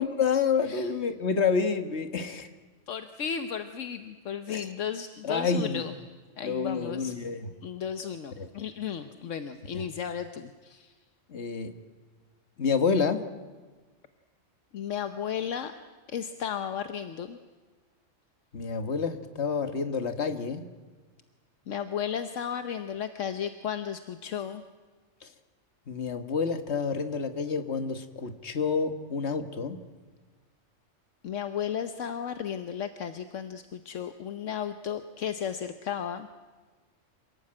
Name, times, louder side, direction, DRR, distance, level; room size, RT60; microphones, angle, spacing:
voice 1, 0.0-2.5 4.5-4.7 5.2-5.8 6.4-7.5 8.4-8.5 9.7-9.8 11.3-11.7 12.6-13.2 18.5-20.6 25.9-29.8, left 5 dB, 60° left, 8 dB, 1.7 m, -28 dB
voice 2, 2.9-5.9 6.4-7.1 7.6-10.9 14.7-15.7 16.1-17.4 21.7-24.6 31.2-36.3, left 8 dB, 75° left, 9 dB, 1.3 m, -34 dB
27.0 x 18.0 x 8.8 m, 1.3 s
omnidirectional pair, 1.3 m